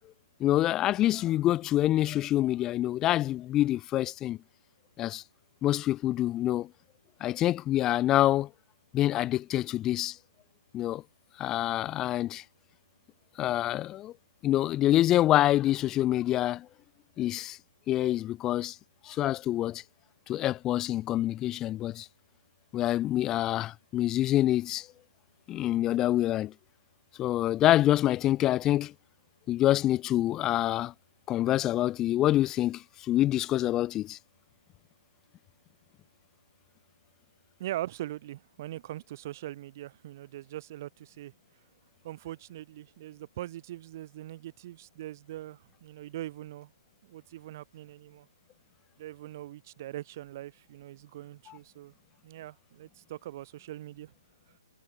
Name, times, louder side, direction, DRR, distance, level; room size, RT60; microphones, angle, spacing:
voice 1, 0.4-4.4 5.0-5.2 5.6-6.7 7.2-8.5 8.9-10.2 10.7-11.0 11.4-12.4 13.4-14.1 14.4-16.7 17.2-17.6 17.9-18.8 19.0-19.8 20.3-22.1 22.7-24.9 25.5-26.5 27.2-28.9 29.5-30.9 31.3-34.2 51.5-51.6, left 14 dB, 20° left, 0.7 m, -26 dB
voice 2, 37.6-41.3 42.0-46.7 47.0-48.3 49.0-51.9 52.2-54.1, right 14 dB, 40° right, 4.7 m, -41 dB
figure-of-eight pair, 130°, 2 cm